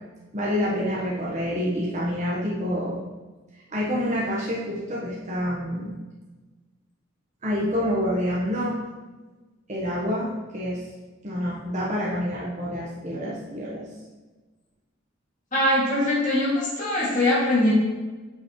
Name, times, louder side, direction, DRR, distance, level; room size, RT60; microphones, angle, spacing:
voice 1, 0.3-3.0 3.7-5.9 7.4-8.8 9.7-10.8 11.2-13.9, equal, 35° right, -6 dB, 1.3 m, -27 dB
voice 2, 15.5-17.7, left 1 dB, 40° left, -7 dB, 2.5 m, -22 dB
9.6 x 5.6 x 3.2 m, 1.3 s
head